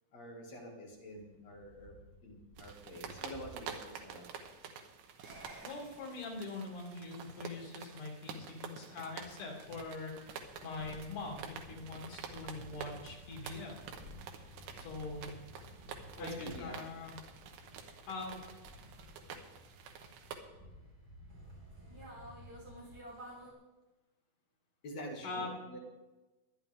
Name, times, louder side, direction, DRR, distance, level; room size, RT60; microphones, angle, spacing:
voice 1, 0.1-1.9 2.2-4.2 9.7-9.8 12.4-12.6 13.4-13.6 14.2-15.2 15.8-16.8 17.6-18.1 18.8-19.4 20.7-20.8 21.2-21.4 21.9-22.3 24.8-25.8, equal, 50° left, -1 dB, 3.1 m, -48 dB
sound 1, 2.6-20.4, right 7 dB, 85° right, 3.2 m, -49 dB
sound 2, 5.2-23.5, equal, 35° right, 3.8 m, -55 dB
voice 2, 5.6-13.8 14.8-15.3 16.2-17.2 18.1-18.4 25.2-25.5, left 3 dB, 90° left, -1 dB, 5.0 m, -43 dB
22.5 x 10.0 x 3.7 m, 1.1 s
omnidirectional pair, 4.5 m